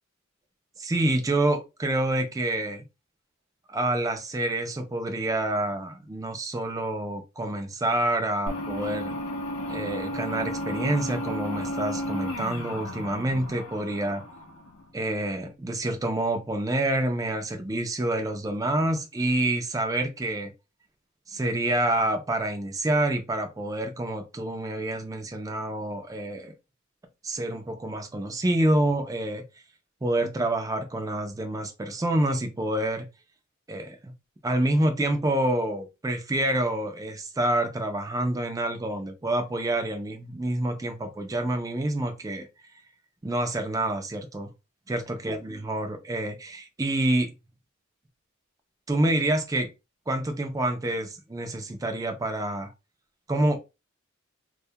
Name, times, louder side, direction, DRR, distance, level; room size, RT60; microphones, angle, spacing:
voice 1, 0.8-2.8 3.7-9.1 9.7-14.2 14.9-20.5 21.3-26.5 27.2-29.4 30.0-33.1 33.7-34.1 34.4-42.5 43.2-44.5 44.9-47.3 48.9-49.7 50.1-52.7 53.3-53.6, right 1 dB, 15° right, 0.4 m, -27 dB
sound 1, 8.5-14.8, left 1 dB, 80° left, 0.5 m, -33 dB
2.2 x 2.1 x 2.7 m
head